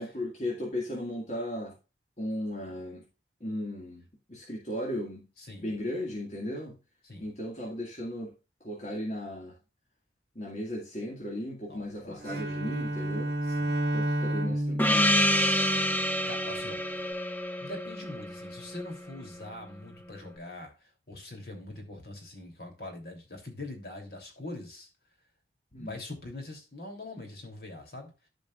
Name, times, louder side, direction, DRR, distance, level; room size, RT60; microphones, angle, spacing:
voice 1, 0.0-1.8 2.2-3.1 3.4-5.3 5.6-6.8 7.2-8.3 8.6-9.6 10.4-13.3 13.9-15.2 25.7-26.0, left 1 dB, 40° left, 2.1 m, -36 dB
voice 2, 5.4-5.8 7.0-7.3 11.7-12.4 13.5-13.9 15.6-16.8 17.6-24.9 25.8-28.1, left 2 dB, 60° left, 3.1 m, -43 dB
Bowed string instrument, 12.2-16.4, right 1 dB, 60° right, 2.2 m, -31 dB
Gong, 14.8-19.1, equal, 10° left, 0.8 m, -27 dB
13.5 x 5.2 x 2.5 m
head